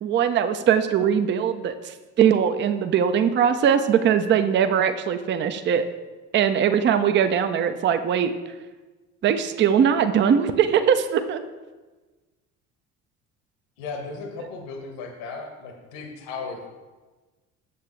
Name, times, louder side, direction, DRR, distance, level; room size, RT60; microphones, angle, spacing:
voice 1, 0.0-5.9 6.3-8.3 9.2-11.4, right 8 dB, 25° right, 10 dB, 0.5 m, -21 dB
voice 2, 13.8-16.7, left 4 dB, 60° left, 3 dB, 1.4 m, -36 dB
8.4 x 7.3 x 3.1 m, 1.2 s
figure-of-eight pair, 60°, 45 cm